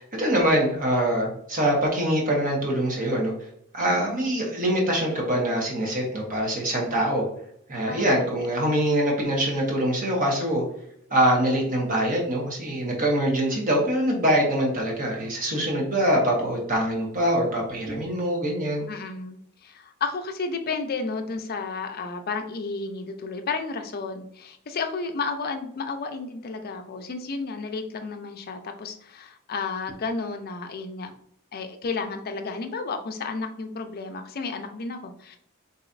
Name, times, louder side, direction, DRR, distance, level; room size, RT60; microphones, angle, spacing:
voice 1, 0.0-3.3 3.7-7.2 7.7-10.6 11.1-18.8, right 1 dB, 40° right, -2 dB, 1.2 m, -24 dB
voice 2, 3.8-4.1 7.9-8.2 18.9-31.1 31.5-35.4, left 4 dB, 45° left, 6 dB, 0.5 m, -32 dB
4.1 x 3.0 x 2.5 m, 0.71 s
head